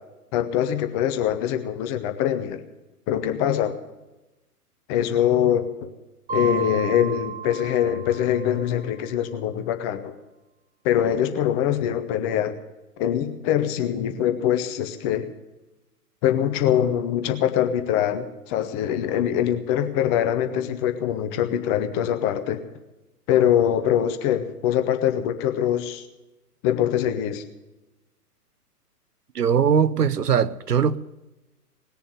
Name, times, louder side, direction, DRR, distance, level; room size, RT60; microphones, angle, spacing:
voice 1, 0.3-2.6 3.1-3.7 4.9-5.7 6.3-10.1 10.8-12.5 13.0-15.3 16.2-22.6 23.3-26.0 26.6-27.4, left 10 dB, 15° left, 0.7 m, -23 dB
Mallet percussion, 6.3-8.9, right 6 dB, 15° right, 2.9 m, -33 dB
voice 2, 29.3-31.0, right 7 dB, 80° right, 0.8 m, -20 dB
19.0 x 7.0 x 9.3 m
figure-of-eight pair, 120°, 47 cm